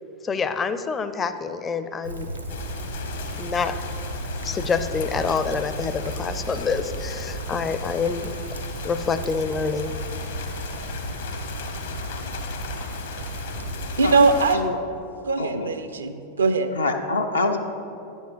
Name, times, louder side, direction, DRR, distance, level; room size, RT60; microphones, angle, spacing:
voice 1, 0.2-2.3 3.4-3.8 4.4-8.3 8.8-9.9, left 5 dB, 20° left, 11 dB, 0.4 m, -27 dB
Rain, 2.0-14.3, right 2 dB, 90° right, 0.9 m, -34 dB
sound 1, 2.5-14.6, left 5 dB, 60° left, 0.8 m, -37 dB
voice 2, 14.0-14.6 15.3-16.7, right 3 dB, 70° right, 9 dB, 0.5 m, -20 dB
voice 3, 15.4-15.7 16.8-17.6, left 3 dB, 80° left, 3 dB, 0.5 m, -25 dB
10.0 x 5.3 x 5.0 m, 2.8 s
figure-of-eight pair, 90°, 0 cm